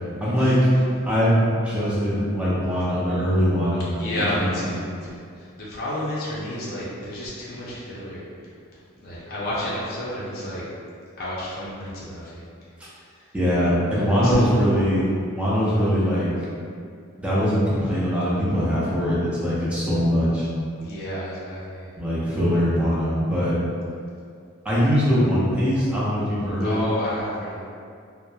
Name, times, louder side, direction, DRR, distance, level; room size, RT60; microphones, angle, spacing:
voice 1, 0.2-0.7 1.1-4.5 13.3-16.3 17.2-20.5 22.0-23.6 24.6-26.7, equal, 5° right, -9 dB, 0.5 m, -22 dB
voice 2, 4.0-8.3 8.7-10.6 11.2-12.4 12.9-13.3 13.9-14.6 20.8-21.9 26.6-27.6, left 1 dB, 45° left, -7 dB, 0.5 m, -31 dB
2.8 x 2.0 x 2.2 m, 2.3 s
head